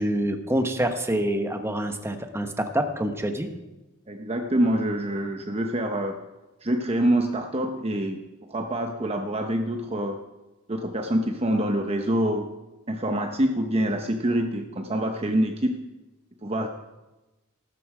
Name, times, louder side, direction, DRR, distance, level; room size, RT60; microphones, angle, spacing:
voice 1, 0.0-3.5, right 1 dB, 10° right, 6 dB, 1.2 m, -26 dB
voice 2, 4.1-6.2 6.6-8.2 8.5-10.2 10.7-12.5 12.9-15.9 16.4-16.7, right 1 dB, 30° right, 4 dB, 0.9 m, -26 dB
15.0 x 13.0 x 4.9 m, 1.0 s
head